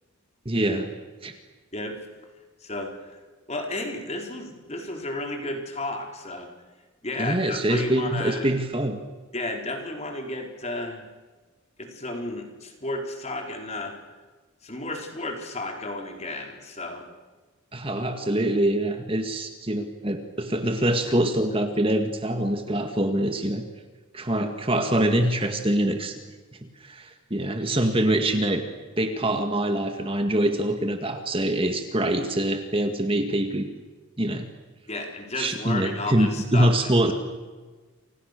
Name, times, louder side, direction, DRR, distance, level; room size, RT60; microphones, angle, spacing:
voice 1, 0.5-0.9 1.2-1.4 7.2-9.0 17.7-23.6 24.1-26.2 26.8-28.6 29.0-33.7 34.2-34.5 35.4-37.1, right 1 dB, 25° right, 6 dB, 2.0 m, -24 dB
voice 2, 2.6-3.2 3.5-6.5 7.0-8.5 9.3-11.1 11.8-13.9 14.6-17.1 34.9-37.1, left 2 dB, 30° left, 3 dB, 4.5 m, -33 dB
29.5 x 27.0 x 6.8 m, 1.3 s
head